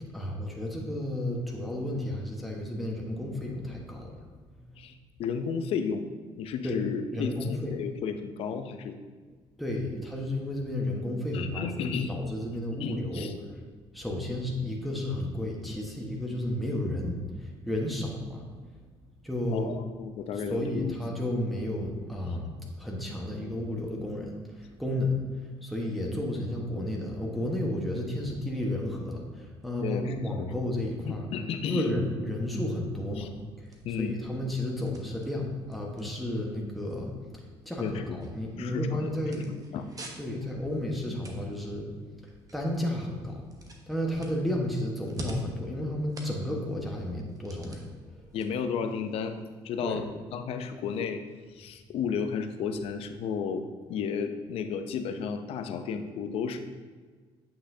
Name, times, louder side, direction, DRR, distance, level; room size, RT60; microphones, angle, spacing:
voice 1, 0.1-4.1 6.6-6.8 7.1-7.7 9.6-13.6 13.9-18.4 19.2-19.7 20.5-22.5 22.8-25.2 25.6-31.3 31.7-33.3 33.6-33.7 34.0-39.4 40.2-41.9 42.5-43.5 43.9-47.9 49.8-50.0, left 1 dB, ahead, -2 dB, 1.3 m, -32 dB
voice 2, 5.2-6.1 6.4-8.9 11.3-12.2 12.5-13.3 19.5-20.9 29.8-30.5 31.1-31.9 33.2-33.3 33.8-34.2 37.8-38.2 38.6-39.1 39.4-39.9 48.3-50.0 50.3-51.2 51.5-56.6, left 6 dB, 70° left, 8 dB, 0.6 m, -33 dB
sound 1, 32.8-49.8, right 1 dB, 35° right, 1.1 m, -48 dB
8.6 x 5.7 x 2.7 m, 1.5 s
supercardioid pair, 80°, 11 cm